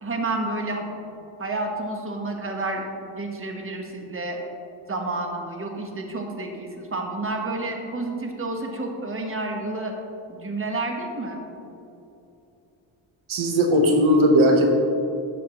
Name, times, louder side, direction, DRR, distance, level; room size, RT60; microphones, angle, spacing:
voice 1, 0.0-1.0 1.4-4.4 4.9-10.0 10.3-11.4, right 2 dB, 25° right, 2 dB, 1.2 m, -30 dB
voice 2, 13.3-14.7, equal, 75° right, 2 dB, 1.1 m, -18 dB
11.5 x 7.1 x 3.0 m, 2.8 s
cardioid pair, 75°, 49 cm